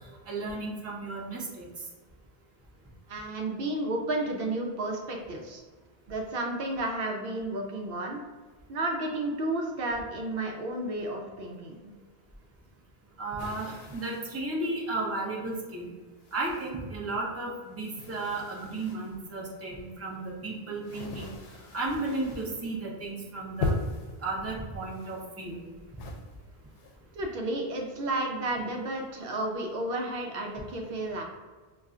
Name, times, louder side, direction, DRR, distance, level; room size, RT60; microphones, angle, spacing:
voice 1, 0.3-1.7 13.2-15.9 16.3-23.7 24.2-25.7, right 2 dB, 20° right, -3 dB, 0.6 m, -34 dB
voice 2, 3.1-5.6 6.1-8.2 8.7-11.9 27.1-31.2, right 2 dB, 70° right, 1 dB, 0.7 m, -32 dB
sound 1, 13.4-14.4 15.1-15.2 16.2-17.1 17.4-19.2 19.9-22.6 22.9-23.2 23.6-24.2 24.8-25.7 26.0-27.0, left 3 dB, 75° left, 0.8 m, -38 dB
5.4 x 2.3 x 2.4 m, 1.4 s
omnidirectional pair, 1.0 m